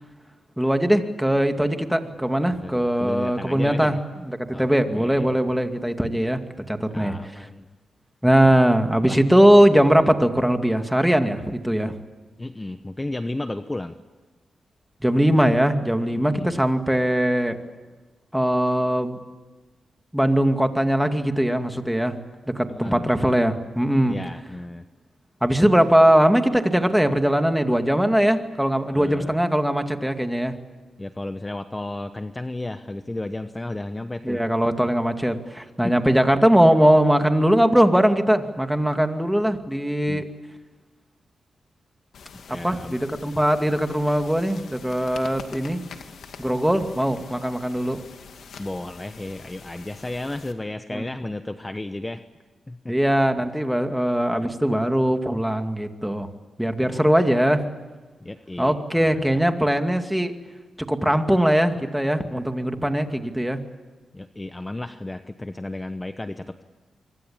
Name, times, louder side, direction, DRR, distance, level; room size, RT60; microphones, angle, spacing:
voice 1, 0.6-4.0 4.2-6.4 6.7-7.2 8.2-11.9 15.0-17.6 18.3-19.2 20.1-22.1 22.5-24.2 25.4-30.6 34.2-40.3 42.6-45.8 46.4-48.0 50.9-51.0 52.9-56.3 56.6-57.6 58.6-60.4 60.8-63.6, equal, 5° right, 6 dB, 2.3 m, -20 dB
voice 2, 2.6-4.0 4.5-4.7 4.9-5.4 6.9-7.7 9.0-9.2 12.4-14.0 16.1-16.6 22.7-23.1 24.1-24.8 28.9-29.4 31.0-34.4 35.8-36.1 40.1-40.2 42.5-43.0 48.6-52.2 52.7-52.9 56.8-57.2 58.2-59.5 62.8-62.9 64.1-66.6, left 2 dB, 20° left, 9 dB, 1.1 m, -33 dB
sound 1, 42.1-50.5, left 6 dB, 80° left, 2.4 m, -44 dB
25.0 x 23.5 x 8.9 m, 1.3 s
cardioid pair, 80°, 0 cm